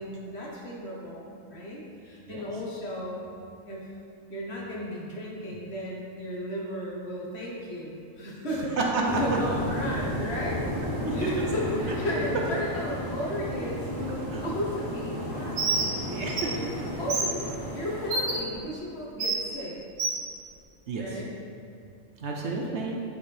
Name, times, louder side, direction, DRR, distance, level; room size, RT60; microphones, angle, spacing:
voice 1, 0.0-3.2 3.6-3.9 4.3-10.6 11.1-16.0 16.4-16.7 17.0-17.4 17.7-19.8 21.0-21.3, equal, 55° left, -4 dB, 1.3 m, -34 dB
voice 2, 8.8-9.2 11.0-11.2 14.3-14.4 16.0-16.5 20.9-21.2 22.2-23.0, right 3 dB, 65° right, 0 dB, 0.9 m, -30 dB
sound 1, 9.0-18.4, equal, 20° left, 0.7 m, -33 dB
Bird, 15.6-15.9 16.3-16.4 17.1-17.3 18.1-18.3 19.2-19.4 20.0-20.2, right 3 dB, 80° right, 1.3 m, -26 dB
8.6 x 4.2 x 3.3 m, 2.5 s
omnidirectional pair, 1.4 m